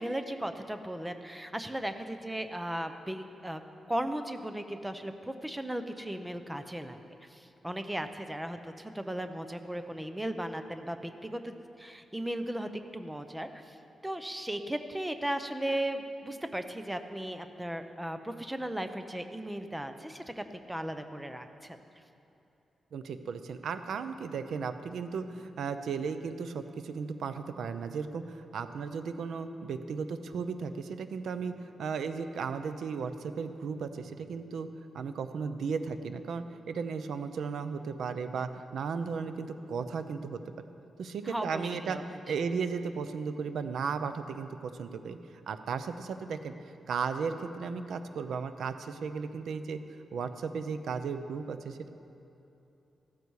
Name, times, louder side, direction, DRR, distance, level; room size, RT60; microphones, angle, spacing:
voice 1, 0.0-3.6 3.9-7.0 7.3-13.8 14.0-21.8 41.2-42.0, right 1 dB, 5° right, 8 dB, 0.7 m, -36 dB
voice 2, 22.9-34.7 34.9-40.7 41.0-45.2 45.5-46.5 46.9-49.8 50.1-51.9, right 5 dB, 75° right, 10 dB, 0.7 m, -35 dB
15.0 x 13.5 x 4.7 m, 2.9 s
wide cardioid pair, 140°, 0 cm